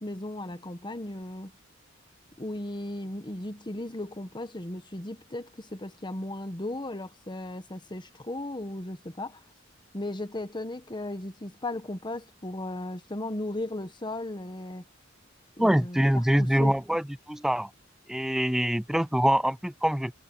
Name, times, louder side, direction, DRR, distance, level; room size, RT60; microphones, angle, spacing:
voice 1, 0.0-1.5 2.4-9.4 9.9-14.8 15.6-16.8, left 1 dB, 25° left, 1.2 m, -36 dB
voice 2, 15.6-17.7 18.1-20.1, equal, ahead, 0.3 m, -24 dB
head